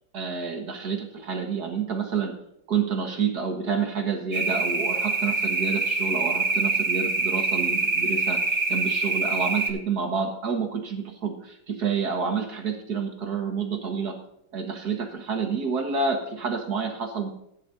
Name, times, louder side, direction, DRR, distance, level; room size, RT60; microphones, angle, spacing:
voice 1, 0.1-2.4 2.7-14.2 14.5-17.3, right 5 dB, 60° right, 4 dB, 1.9 m, -29 dB
sound 1, 4.3-9.7, right 3 dB, 20° right, 0.9 m, -25 dB
15.0 x 11.0 x 2.6 m, 0.77 s
omnidirectional pair, 2.0 m